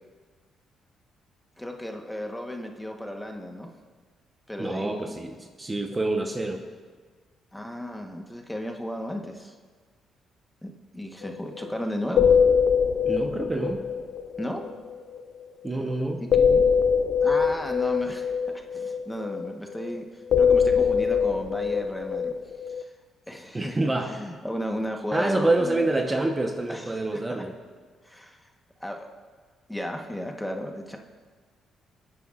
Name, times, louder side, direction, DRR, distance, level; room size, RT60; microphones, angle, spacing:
voice 1, 1.6-3.7 4.5-5.1 7.5-9.5 10.6-12.4 14.4-14.6 16.2-16.6 17.2-22.3 22.7-22.9 23.3-23.8 24.1-25.9 26.7-27.1 28.0-28.5 28.8-29.1 29.7-31.0, left 1 dB, 5° left, 3 dB, 1.1 m, -34 dB
voice 2, 4.6-6.6 13.0-13.8 15.6-16.2 23.5-24.2 25.1-27.5, right 2 dB, 20° right, 3 dB, 1.0 m, -27 dB
sound 1, 11.2-11.3 11.6-11.8 12.1-15.4 16.3-20.0 20.3-22.8, left 6 dB, 60° left, 0.5 m, -23 dB
21.0 x 9.6 x 2.5 m, 1.5 s
cardioid pair, 90°, 0 cm